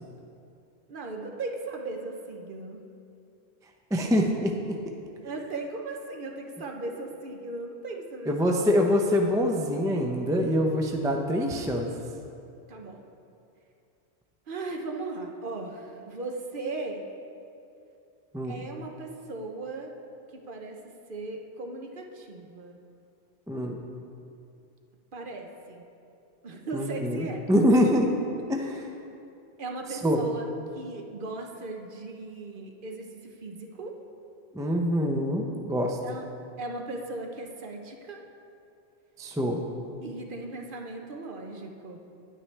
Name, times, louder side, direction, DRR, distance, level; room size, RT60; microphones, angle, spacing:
voice 1, 0.9-2.8 5.2-8.8 12.7-13.0 14.5-17.1 18.4-19.9 20.3-22.8 25.1-25.8 26.4-27.5 29.6-30.5 30.7-34.0 36.0-36.3 36.6-38.2 40.0-42.0, right 2 dB, 55° right, 2 dB, 0.9 m, -37 dB
voice 2, 3.9-4.5 8.3-11.9 18.3-18.6 23.5-23.8 26.7-28.1 28.5-28.8 30.0-30.2 34.5-36.0 39.2-39.6, equal, 5° right, 2 dB, 0.3 m, -25 dB
9.4 x 9.0 x 3.3 m, 2.6 s
omnidirectional pair, 1.1 m